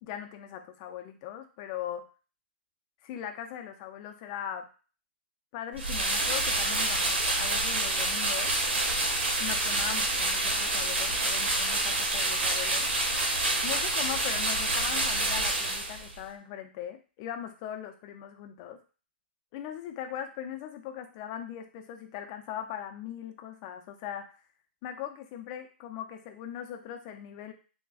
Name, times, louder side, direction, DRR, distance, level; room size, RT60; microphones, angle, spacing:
voice 1, 0.0-2.1 3.0-4.7 5.5-8.6 9.4-12.9 13.6-18.8 19.5-24.4 24.8-27.5, left 10 dB, 35° left, 5 dB, 0.5 m, -40 dB
sound 1, 5.7-16.2, right 2 dB, 90° right, 1.0 m, -28 dB
3.7 x 2.2 x 2.4 m, 0.36 s
hypercardioid pair, 140°, 6 cm